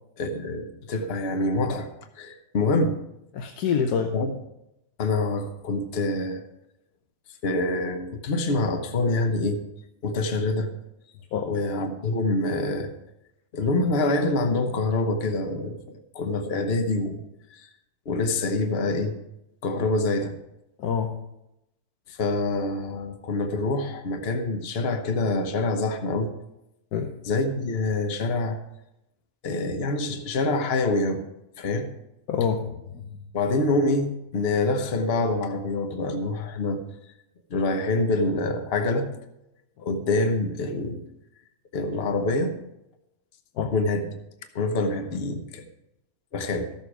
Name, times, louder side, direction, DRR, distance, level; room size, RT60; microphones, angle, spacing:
voice 1, 0.2-1.9 2.2-3.0 4.1-4.4 5.0-6.4 7.4-9.6 10.0-10.7 11.4-12.9 13.5-15.8 16.1-17.2 17.5-17.7 18.1-19.2 19.6-20.3 22.1-26.3 27.2-28.6 29.4-31.2 31.6-31.9 33.3-36.8 37.5-39.1 39.8-41.0 41.7-42.5 43.7-44.1 44.5-45.6 46.3-46.7, left 2 dB, 45° left, 6 dB, 1.1 m, -26 dB
voice 2, 3.3-4.1 11.3-11.5 20.8-21.1 26.9-27.1 32.3-33.0 43.6-43.7, left 7 dB, 85° left, 5 dB, 1.3 m, -26 dB
14.0 x 7.1 x 4.8 m, 0.88 s
omnidirectional pair, 1.6 m